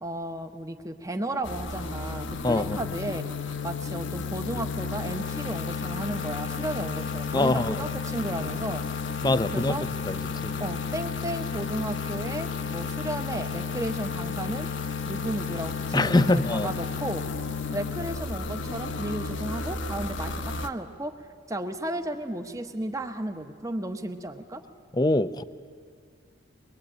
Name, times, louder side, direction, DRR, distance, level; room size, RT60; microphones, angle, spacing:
voice 1, 0.0-3.3 3.6-8.9 9.5-9.8 10.6-14.7 15.0-17.3 17.7-21.1 21.5-24.6, right 1 dB, 15° right, 7 dB, 1.1 m, -34 dB
sound 1, 1.4-20.7, left 5 dB, 70° left, 1.1 m, -32 dB
voice 2, 2.4-2.8 7.3-7.9 9.2-9.8 10.1-10.6 15.9-16.7 24.9-25.4, left 2 dB, 20° left, 13 dB, 0.5 m, -24 dB
23.0 x 21.0 x 8.9 m, 2.1 s
head